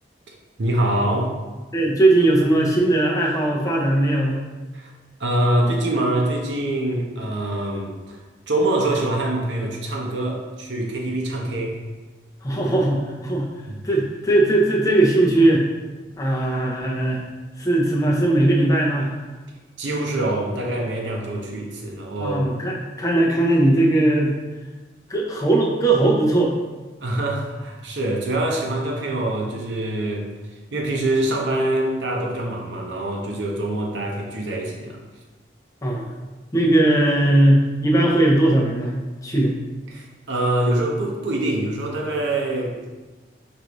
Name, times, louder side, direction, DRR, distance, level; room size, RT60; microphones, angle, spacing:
voice 1, 0.6-1.4 4.7-4.9 5.2-8.2 8.5-11.8 13.7-13.8 19.8-22.4 27.0-30.3 30.7-35.0 36.5-36.7 39.9-43.0, right 1 dB, 85° right, 0 dB, 0.7 m, -24 dB
voice 2, 1.7-4.4 12.4-13.5 13.8-15.6 16.2-17.2 17.6-19.1 22.2-24.4 25.1-26.5 35.8-36.1 36.5-38.9 39.2-39.5, right 1 dB, 20° left, -2 dB, 0.6 m, -19 dB
4.9 x 2.6 x 2.9 m, 1.2 s
head